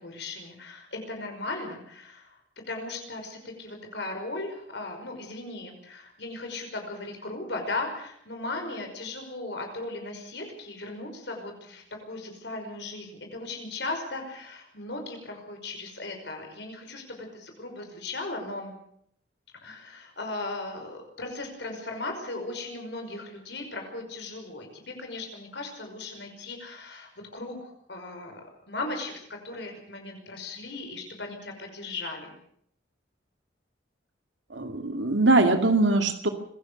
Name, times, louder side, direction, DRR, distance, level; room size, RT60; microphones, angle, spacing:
voice 1, 0.0-2.3 2.7-18.7 19.6-28.4 28.7-32.3, left 2 dB, 70° left, 3 dB, 5.5 m, -37 dB
voice 2, 34.5-36.3, right 2 dB, 85° right, 5 dB, 2.3 m, -22 dB
25.5 x 17.5 x 6.5 m, 0.68 s
head